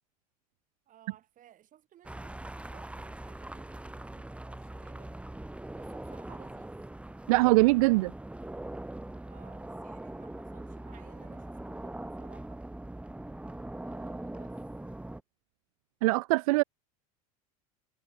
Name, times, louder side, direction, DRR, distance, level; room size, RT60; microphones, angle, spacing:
voice 1, 0.9-5.1 5.7-6.7 7.3-8.0 9.3-12.6 13.7-15.0, right 11 dB, 45° right, 7.0 m, -59 dB
sound 1, 2.0-15.2, right 1 dB, 5° right, 3.0 m, -42 dB
voice 2, 7.3-8.1 16.0-16.6, right 22 dB, 70° right, 0.6 m, -22 dB
hypercardioid pair, 85°, 19 cm